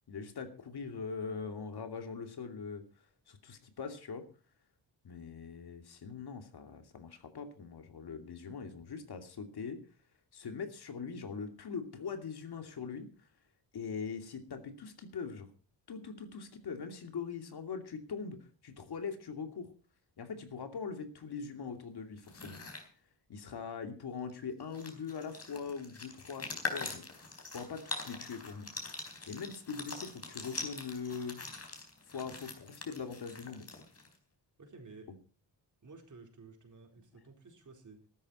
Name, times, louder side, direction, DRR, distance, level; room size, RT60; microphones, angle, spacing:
voice 1, 0.1-2.9 3.3-4.3 5.0-9.8 10.3-13.1 13.7-15.5 15.9-19.7 20.2-22.6 23.3-27.3 27.5-28.7 29.3-31.4 32.1-33.7, left 5 dB, 60° left, 6 dB, 2.7 m, -42 dB
sound 1, 22.2-22.9 24.3-24.4 24.6-34.2, left 3 dB, 35° left, 4.2 m, -43 dB
voice 2, 34.6-35.1 35.8-38.1, right 4 dB, 45° right, 3 dB, 4.3 m, -53 dB
14.5 x 13.0 x 4.3 m, 0.38 s
wide cardioid pair, 135°, 43 cm